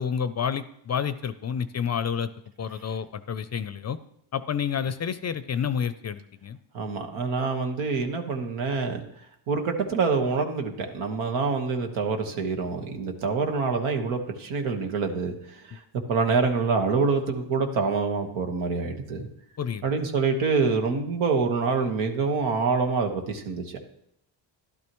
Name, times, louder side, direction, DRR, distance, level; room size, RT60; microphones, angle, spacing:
voice 1, 0.0-2.3 2.6-4.0 4.3-6.6 19.6-19.8, left 7 dB, 35° left, 13 dB, 0.5 m, -29 dB
voice 2, 6.7-9.0 9.5-15.8 16.1-19.2 19.8-24.0, right 4 dB, 90° right, 4 dB, 1.4 m, -26 dB
12.0 x 11.5 x 3.1 m, 0.73 s
cardioid pair, 85°, 48 cm